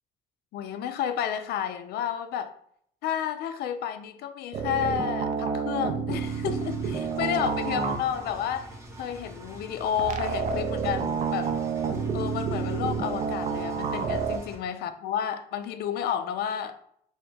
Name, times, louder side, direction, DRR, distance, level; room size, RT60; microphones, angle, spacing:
voice 1, 0.5-2.5 3.0-8.7 9.0-11.5 12.1-16.7, left 9 dB, 70° left, 9 dB, 0.4 m, -31 dB
sound 1, 4.5-8.3 10.0-14.4, right 5 dB, 50° right, 0.4 m, -29 dB
Engine, 6.1-14.5, right 1 dB, 15° right, 0.8 m, -45 dB
2.9 x 2.6 x 3.3 m, 0.67 s
cardioid pair, 110°, 17 cm